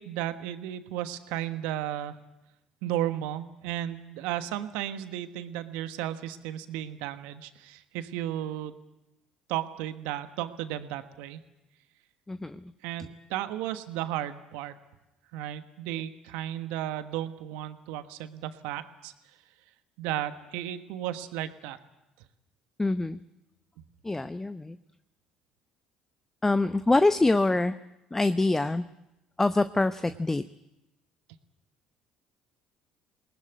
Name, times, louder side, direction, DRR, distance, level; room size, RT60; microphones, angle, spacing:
voice 1, 0.0-2.2 2.8-8.8 9.5-11.4 12.8-14.7 15.3-19.1 20.0-21.8, right 12 dB, 75° right, 10 dB, 1.3 m, -34 dB
voice 2, 12.3-12.7 22.8-23.2 24.0-24.8 26.4-27.7 28.1-28.8 29.4-30.4, left 2 dB, 15° left, 12 dB, 0.7 m, -25 dB
21.5 x 19.0 x 9.3 m, 0.96 s
hypercardioid pair, 60°, 3 cm